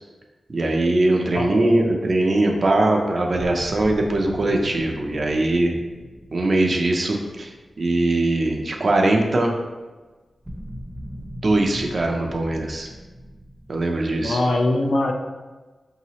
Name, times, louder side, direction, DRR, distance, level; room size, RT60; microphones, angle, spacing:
voice 1, 0.5-5.7 6.3-9.5 11.4-12.9 13.7-14.4, right 2 dB, 45° right, 1 dB, 0.5 m, -21 dB
voice 2, 1.3-1.9 14.2-15.1, left 2 dB, 50° left, 3 dB, 0.5 m, -23 dB
sound 1, 3.3-8.4 8.7-8.9 10.4-14.2, equal, 5° right, 0.7 m, -40 dB
4.6 x 2.8 x 3.0 m, 1.3 s
wide cardioid pair, 140°, 0 cm